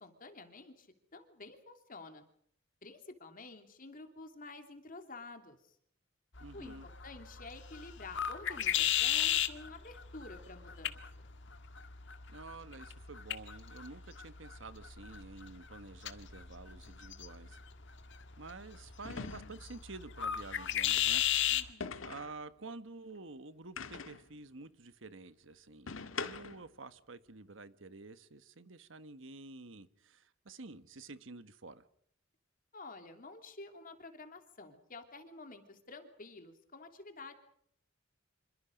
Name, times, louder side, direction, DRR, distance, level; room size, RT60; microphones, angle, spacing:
voice 1, 0.0-2.2 2.8-5.8 6.5-11.3 21.5-21.9 32.7-37.3, left 3 dB, 45° left, 3.0 m, -50 dB
sound 1, 6.3-21.7, left 11 dB, 65° left, 1.8 m, -36 dB
voice 2, 6.4-6.9 12.3-17.6 18.4-21.2 22.0-31.8, right 3 dB, 70° right, 1.5 m, -50 dB
sound 2, 16.8-17.0 19.0-19.8 21.8-22.4 23.8-24.3 25.9-26.7, left 4 dB, 85° left, 1.7 m, -42 dB
27.5 x 25.5 x 5.3 m
head